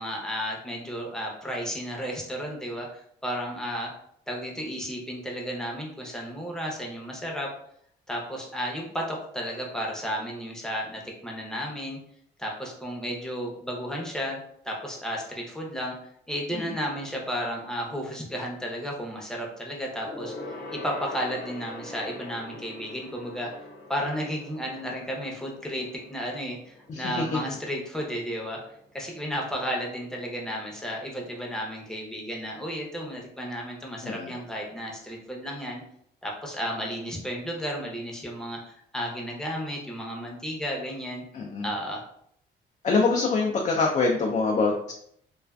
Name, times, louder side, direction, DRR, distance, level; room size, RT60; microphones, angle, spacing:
voice 1, 0.0-3.9 4.3-7.5 8.1-12.0 12.4-14.4 14.6-16.0 16.3-20.3 20.7-23.6 23.9-28.6 28.9-35.8 36.2-41.2 41.6-42.0, equal, 5° left, -2 dB, 0.7 m, -33 dB
Gong, 20.0-29.8 30.1-30.4 30.7-30.8, left 2 dB, 70° left, 0.8 m, -44 dB
voice 2, 26.9-27.4 34.0-34.3 41.3-41.7 42.8-44.9, left 4 dB, 35° left, 0 dB, 0.4 m, -24 dB
2.4 x 2.4 x 2.2 m, 0.67 s
cardioid pair, 90°, 20 cm